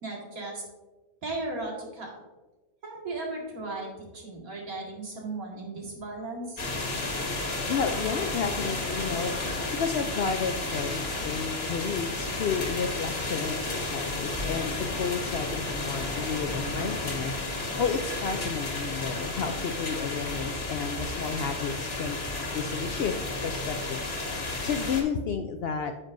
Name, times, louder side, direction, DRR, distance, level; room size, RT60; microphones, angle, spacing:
voice 1, 0.0-0.6 1.2-2.2 2.8-6.6, right 2 dB, 85° right, -2 dB, 2.4 m, -36 dB
sound 1, 6.6-25.0, left 2 dB, 45° left, 1.6 m, -32 dB
voice 2, 7.7-9.4 9.7-22.2 22.5-23.1 23.4-24.0 24.6-25.9, left 6 dB, 65° left, 6 dB, 0.6 m, -32 dB
9.7 x 7.3 x 2.6 m, 1.2 s
omnidirectional pair, 1.5 m